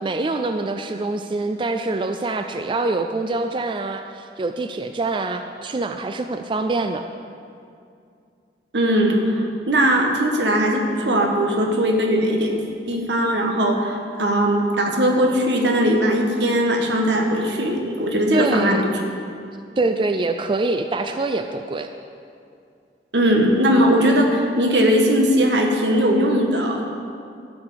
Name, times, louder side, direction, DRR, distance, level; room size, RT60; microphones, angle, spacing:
voice 1, 0.0-7.0 18.3-18.8 19.8-21.9, right 3 dB, 30° right, 7 dB, 0.4 m, -25 dB
voice 2, 8.7-12.6 12.9-18.8 23.1-26.8, equal, 85° right, 2 dB, 1.5 m, -19 dB
13.0 x 4.9 x 8.2 m, 2.4 s
head